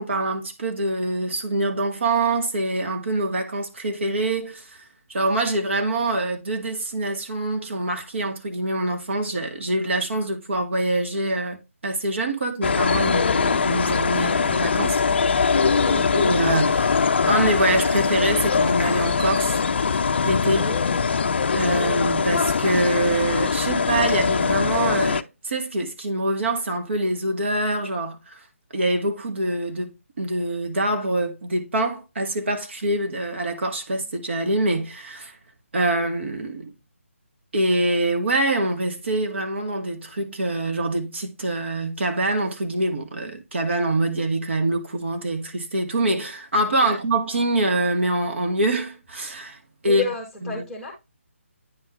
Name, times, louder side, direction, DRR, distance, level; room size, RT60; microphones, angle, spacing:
voice 1, 0.0-15.0 16.1-19.6 19.9-20.7 21.5-28.5 28.7-29.9 30.2-35.4 35.7-36.7 37.5-50.0 50.5-50.6, right 1 dB, 55° right, 1.3 m, -25 dB
sound 1, 12.6-25.2, left 5 dB, 50° left, 0.4 m, -22 dB
voice 2, 20.6-21.3 46.8-47.0 49.8-50.9, left 3 dB, ahead, 1.4 m, -32 dB
9.5 x 3.7 x 2.9 m
figure-of-eight pair, 155°, 7 cm